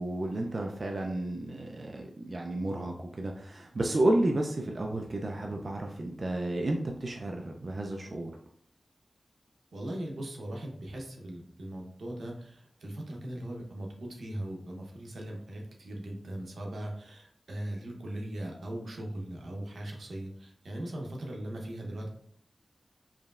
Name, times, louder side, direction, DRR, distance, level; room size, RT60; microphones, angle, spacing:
voice 1, 0.0-8.3, right 1 dB, 55° right, 1 dB, 0.4 m, -31 dB
voice 2, 9.7-22.1, right 1 dB, 90° right, 0 dB, 0.9 m, -39 dB
4.8 x 3.0 x 2.4 m, 0.62 s
wide cardioid pair, 65°, 0 cm